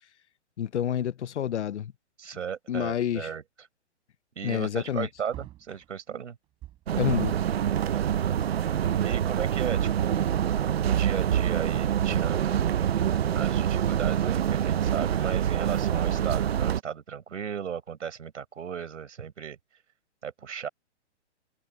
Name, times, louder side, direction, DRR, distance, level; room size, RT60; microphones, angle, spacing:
voice 1, 0.6-1.9 2.7-3.3 4.4-5.1 7.0-7.3, left 10 dB, 75° left, 0.9 m, -28 dB
voice 2, 2.2-3.7 4.4-6.4 7.8-8.6 9.0-10.3 10.8-12.8 13.3-19.6 20.2-20.7, right 8 dB, 85° right, 5.6 m, -36 dB
Wood, 4.4-4.5 4.8-7.1 8.2-8.3 8.6-9.8 10.3-10.4 11.6-12.5 14.6-15.5, right 14 dB, 15° right, 6.2 m, -49 dB
sound 1, 6.9-16.8, right 9 dB, 60° right, 1.0 m, -26 dB
hypercardioid pair, 175°, 36 cm